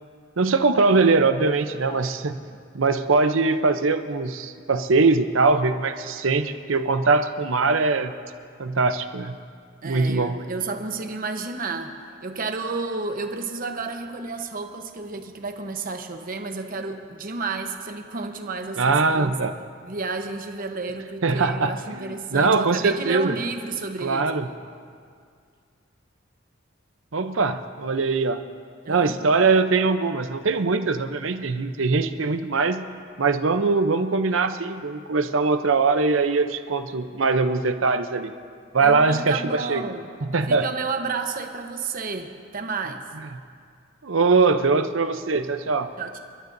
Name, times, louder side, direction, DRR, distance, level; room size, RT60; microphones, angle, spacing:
voice 1, 0.4-2.4 2.7-8.1 8.6-9.4 9.8-10.3 18.8-19.5 21.2-23.4 24.0-24.5 27.1-28.4 28.9-32.8 33.2-38.3 38.7-39.4 39.7-39.8 40.3-40.6 44.0-45.9, right 4 dB, 70° right, 9 dB, 0.7 m, -21 dB
voice 2, 9.8-11.9 12.2-19.4 19.8-24.5 28.8-29.2 38.8-40.1 40.5-43.0 46.0-46.2, right 4 dB, 45° right, 5 dB, 1.0 m, -31 dB
28.0 x 12.5 x 2.7 m, 2.2 s
head